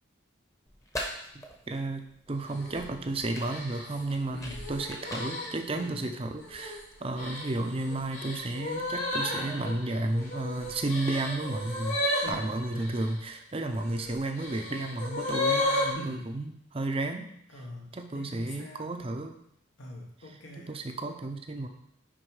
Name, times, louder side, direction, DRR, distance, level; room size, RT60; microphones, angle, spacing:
sound 1, 0.7-6.7, equal, 15° left, 1.0 m, -43 dB
voice 1, 1.7-4.4 4.7-12.0 12.3-17.3 17.9-19.3 20.7-21.7, right 2 dB, 30° right, 5 dB, 0.5 m, -32 dB
sound 2, 2.5-2.8 3.5-5.8 6.4-6.8 7.2-13.1 13.8-15.9, left 1 dB, 90° left, 3.1 m, -33 dB
voice 2, 4.3-4.7 5.7-6.1 12.2-12.5 15.9-16.4 17.5-19.0 19.8-20.8, left 1 dB, 70° left, -1 dB, 1.3 m, -43 dB
6.3 x 4.8 x 4.7 m, 0.74 s
head